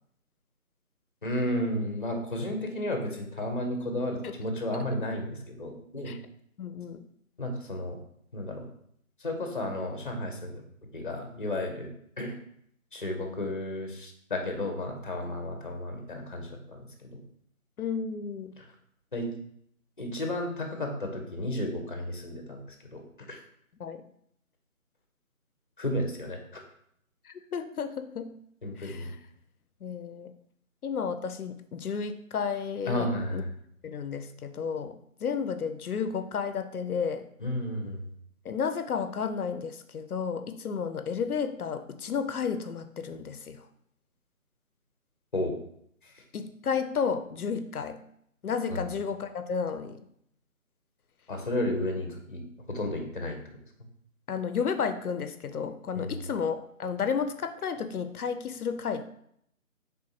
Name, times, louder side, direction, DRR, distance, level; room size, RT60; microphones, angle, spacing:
voice 1, 1.2-6.2 7.4-8.0 8.3-8.7 9.2-10.6 10.9-11.9 12.2-12.3 12.9-17.2 18.6-18.7 19.1-19.3 20.0-22.6 22.9-23.0 23.3-23.4 25.8-26.6 28.6-29.1 32.9-33.5 37.4-38.1 45.3-45.6 46.0-46.2 48.7-48.8 51.3-52.4 52.7-53.6 55.9-56.2, left 1 dB, 35° left, 3 dB, 0.6 m, -33 dB
voice 2, 6.6-7.0 17.8-18.5 23.8-24.0 27.2-28.4 28.8-29.2 29.8-30.3 30.8-33.1 33.3-33.4 33.8-37.3 38.4-43.7 46.3-48.0 48.4-50.0 54.3-59.1, left 6 dB, 85° left, 9 dB, 0.5 m, -32 dB
4.3 x 3.4 x 2.7 m, 0.70 s
figure-of-eight pair, 155°, 43 cm